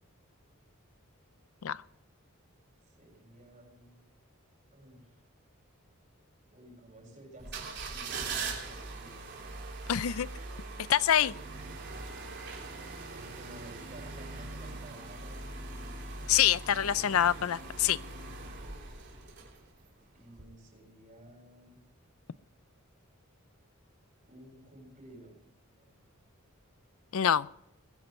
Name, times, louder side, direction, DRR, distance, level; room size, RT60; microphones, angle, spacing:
voice 1, 2.8-4.0 4.7-5.2 6.5-9.2 13.1-16.0 16.8-17.2 20.1-21.8 24.3-25.4 25.7-25.9, right 1 dB, 35° right, -1 dB, 7.0 m, -54 dB
sound 1, 7.4-19.9 20.3-20.4, right 3 dB, 50° right, 3.5 m, -41 dB
voice 2, 9.9-10.3 10.9-11.3 16.3-18.0 27.1-27.5, left 10 dB, 80° left, 19 dB, 0.5 m, -26 dB
21.5 x 11.0 x 4.5 m, 0.79 s
head